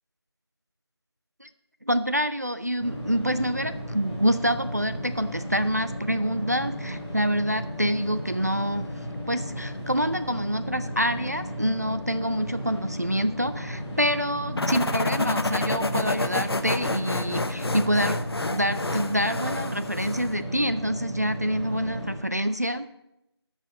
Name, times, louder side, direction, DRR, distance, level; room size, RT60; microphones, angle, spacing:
voice 1, 1.9-8.9 9.3-18.2 18.5-22.9, equal, 35° right, 11 dB, 0.3 m, -27 dB
sound 1, 2.8-22.2, equal, 5° left, 2.3 m, -35 dB
sound 2, 14.6-20.4, left 2 dB, 60° left, 0.8 m, -29 dB
12.0 x 6.3 x 5.0 m, 0.86 s
figure-of-eight pair, 175°, 14 cm